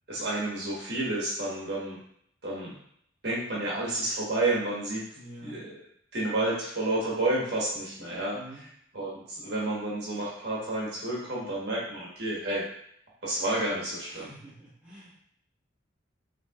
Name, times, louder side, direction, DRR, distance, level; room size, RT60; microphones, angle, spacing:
voice 1, 0.1-2.0 2.4-2.7 3.2-5.0 5.4-5.6 6.1-8.4 8.9-12.6 13.2-14.3, right 2 dB, 55° right, -5 dB, 1.3 m, -30 dB
voice 2, 5.2-5.6 8.3-8.6 14.0-15.2, right 1 dB, 5° right, -9 dB, 1.3 m, -47 dB
5.6 x 3.1 x 2.4 m, 0.69 s
head